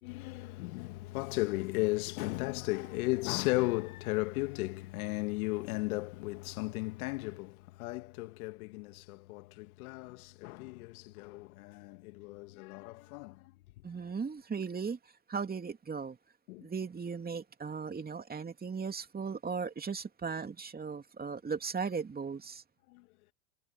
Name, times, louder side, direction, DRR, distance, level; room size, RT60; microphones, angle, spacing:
voice 1, 0.0-13.5 16.5-16.7 22.9-23.1, left 22 dB, 75° left, 1.8 m, -35 dB
voice 2, 13.8-15.0 15.3-16.2 16.6-22.6, right 5 dB, 20° right, 2.7 m, -37 dB
hypercardioid pair, 90°, 43 cm